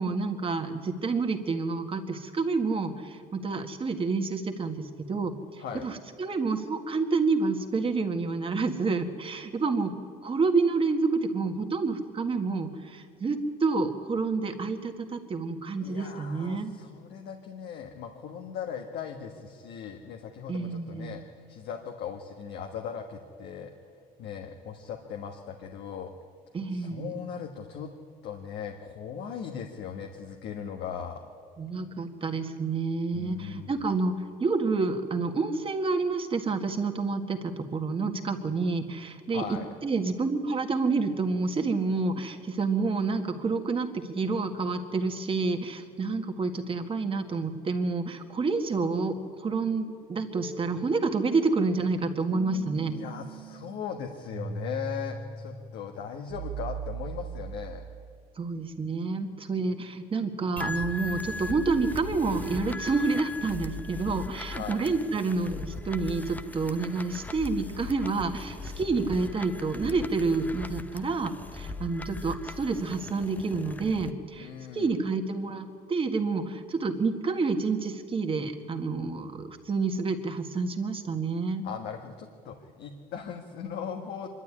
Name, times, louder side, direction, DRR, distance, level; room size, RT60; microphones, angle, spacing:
voice 1, 0.0-5.3 5.8-9.9 10.2-16.7 20.5-21.2 26.5-27.2 31.6-34.1 34.4-52.9 58.4-81.6, right 4 dB, 30° right, 5 dB, 1.9 m, -29 dB
voice 2, 15.8-23.7 24.2-26.1 26.7-27.9 28.2-31.2 33.1-33.8 39.3-39.7 52.9-57.8 64.5-64.8 74.4-74.9 81.6-84.3, left 7 dB, 80° left, 3 dB, 1.5 m, -38 dB
sound 1, 50.3-58.2, right 4 dB, 70° right, 1.8 m, -40 dB
sound 2, 60.6-74.1, left 3 dB, 10° left, 0.8 m, -39 dB
24.0 x 12.0 x 9.8 m, 2.2 s
cardioid pair, 110°, 17 cm